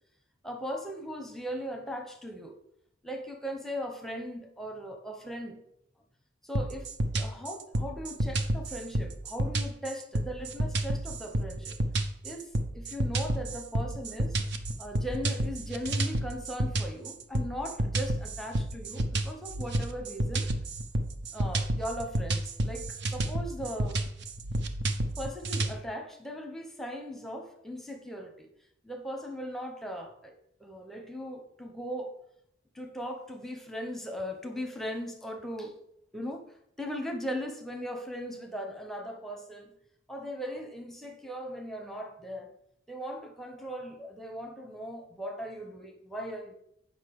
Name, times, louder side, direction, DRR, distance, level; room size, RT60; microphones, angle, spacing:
voice 1, 0.4-2.6 3.0-5.6 6.4-11.7 12.2-14.4 14.8-20.5 21.3-24.1 25.2-28.5 28.8-30.3 30.6-32.2 32.7-35.7 36.1-36.4 36.8-39.7 40.1-42.5 42.9-46.5, equal, ahead, 0.8 m, -38 dB
sound 1, 6.6-25.7, right 1 dB, 60° right, 0.7 m, -30 dB
8.2 x 5.4 x 4.8 m
head